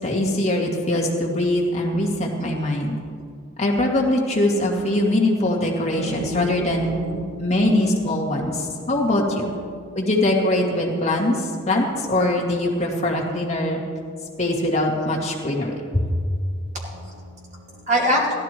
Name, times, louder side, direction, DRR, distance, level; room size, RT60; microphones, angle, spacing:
voice 1, 0.0-2.9 3.6-6.9 7.4-9.5 9.9-13.8 14.4-16.0, left 1 dB, 35° left, -2 dB, 2.4 m, -22 dB
voice 2, 5.8-8.1 8.7-9.1 9.4-10.2 12.2-12.9 16.7-18.3, equal, 35° right, -3 dB, 2.9 m, -29 dB
16.5 x 12.5 x 4.6 m, 2.1 s
head